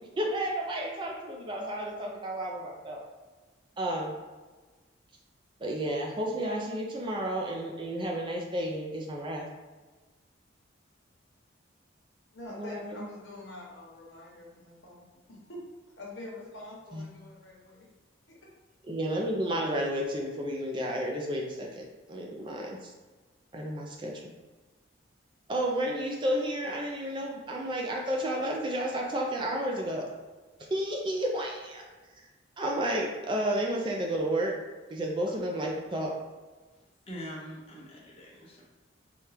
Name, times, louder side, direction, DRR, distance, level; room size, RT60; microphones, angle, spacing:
voice 1, 0.2-3.0 3.8-4.1 5.6-9.5 12.6-13.0 16.9-17.0 18.9-22.9 23.5-24.3 25.5-30.1 30.7-31.8 32.6-34.5 34.9-36.1, right 1 dB, 25° right, 0 dB, 0.4 m, -31 dB
voice 2, 12.3-15.0 15.3-15.6 16.0-17.9 18.3-18.5, left 2 dB, 65° left, -3 dB, 1.0 m, -45 dB
voice 3, 37.1-38.6, equal, 30° left, -4 dB, 0.8 m, -43 dB
4.3 x 2.3 x 3.3 m, 1.3 s
head